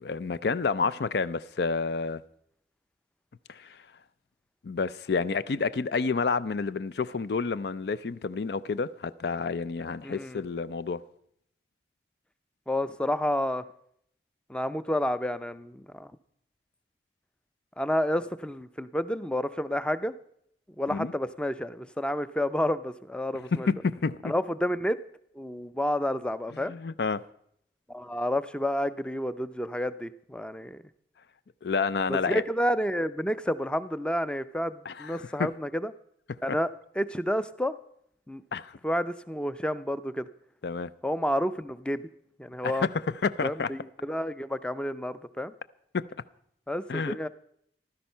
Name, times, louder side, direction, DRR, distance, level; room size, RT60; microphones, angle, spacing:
voice 1, 0.0-2.2 3.5-3.8 4.6-11.0 20.9-21.1 23.5-24.3 26.7-27.2 31.6-32.4 34.9-35.5 36.5-36.6 38.5-38.8 40.6-40.9 42.6-43.7 45.9-46.1 46.9-47.2, left 4 dB, 65° left, 0.4 m, -29 dB
voice 2, 10.0-10.4 12.7-13.6 14.5-16.1 17.8-20.1 20.8-23.7 24.2-25.0 25.4-26.7 27.9-30.8 32.1-35.9 36.4-36.7 37.0-37.8 38.3-38.4 38.8-40.3 41.0-42.1 42.4-42.9 43.4-45.5 46.7-47.3, equal, 5° left, 0.5 m, -30 dB
15.0 x 12.5 x 5.5 m
head